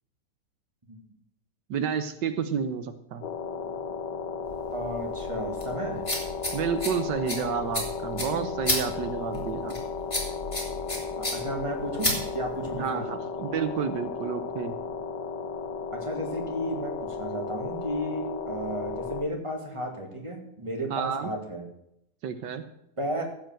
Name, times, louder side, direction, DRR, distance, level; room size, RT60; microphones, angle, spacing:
voice 1, 1.7-3.2 6.5-9.7 12.7-14.7 20.9-21.3 22.2-22.6, right 7 dB, 85° right, 10 dB, 1.6 m, -30 dB
sound 1, 3.2-19.2, left 5 dB, 75° left, 1.5 m, -35 dB
sound 2, 4.5-12.9, left 1 dB, 15° left, 3.3 m, -33 dB
voice 2, 4.7-6.0 9.3-9.4 11.1-13.0 15.9-21.6 23.0-23.2, right 1 dB, 15° right, 1 dB, 2.4 m, -33 dB
15.0 x 5.8 x 7.6 m, 0.78 s
omnidirectional pair, 1.8 m